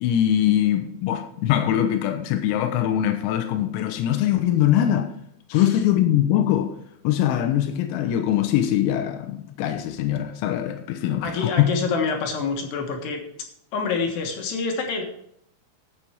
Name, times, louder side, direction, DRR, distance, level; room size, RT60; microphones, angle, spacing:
voice 1, 0.0-5.1 5.5-6.7 7.1-11.7, left 11 dB, 90° left, 3.7 m, -22 dB
voice 2, 11.2-13.2 13.7-15.0, left 4 dB, 65° left, 3.0 m, -27 dB
12.0 x 8.6 x 4.6 m
omnidirectional pair, 5.9 m